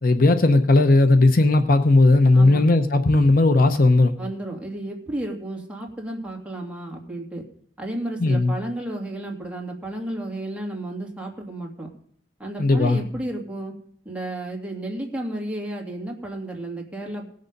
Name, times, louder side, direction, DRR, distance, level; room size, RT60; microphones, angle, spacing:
voice 1, 0.0-4.1 8.2-8.5 12.6-13.0, left 2 dB, 55° left, 9 dB, 0.8 m, -17 dB
voice 2, 2.3-2.6 4.2-7.4 7.8-11.9 12.4-13.7 14.0-17.3, right 1 dB, 10° right, 0 dB, 2.5 m, -32 dB
18.5 x 6.6 x 5.3 m, 0.62 s
head